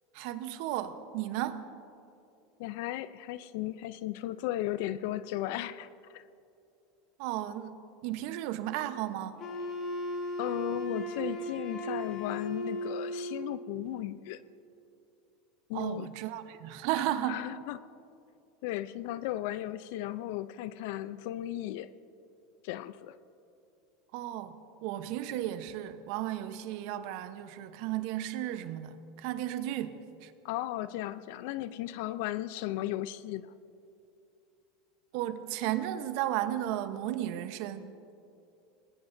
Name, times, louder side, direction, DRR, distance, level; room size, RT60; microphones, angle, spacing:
voice 1, 0.1-1.6 7.2-7.8 8.0-9.4 15.7-17.4 24.1-24.6 24.8-30.3 35.1-38.1, right 12 dB, 65° right, 10 dB, 0.9 m, -34 dB
voice 2, 2.6-6.2 10.4-14.4 15.7-16.1 17.2-17.8 18.6-21.9 22.6-23.2 30.4-33.5, left 14 dB, 70° left, 15 dB, 0.5 m, -35 dB
Wind instrument woodwind instrument, 9.4-13.5, equal, 45° left, 2.1 m, -36 dB
26.0 x 20.0 x 2.7 m, 2.7 s
hypercardioid pair, 105°, 0 cm